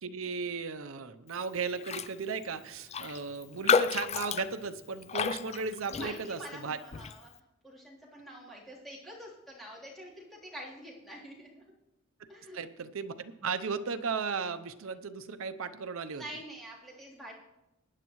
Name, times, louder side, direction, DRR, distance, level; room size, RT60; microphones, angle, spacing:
voice 1, 0.0-6.8 12.5-16.2, right 5 dB, 75° right, 11 dB, 0.7 m, -36 dB
Raindrop, 1.8-2.1 2.4-2.5 2.9-6.5 6.9-7.2, left 5 dB, 30° left, 0.4 m, -31 dB
voice 2, 5.9-7.3 7.6-11.6 12.3-12.6 16.1-17.3, equal, ahead, -7 dB, 3.4 m, -46 dB
21.0 x 9.9 x 3.1 m, 0.94 s
head